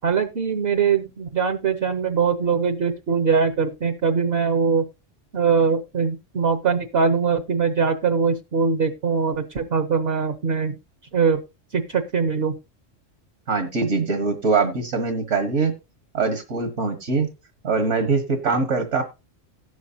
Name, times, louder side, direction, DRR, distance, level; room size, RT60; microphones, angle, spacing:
voice 1, 0.0-4.8 5.3-10.8 11.1-11.4 11.7-12.5, right 5 dB, 55° right, 8 dB, 1.1 m, -22 dB
voice 2, 13.5-15.7 16.1-17.3 17.6-19.0, right 4 dB, 75° right, 5 dB, 1.9 m, -22 dB
18.0 x 6.4 x 2.7 m, 0.26 s
omnidirectional pair, 1.3 m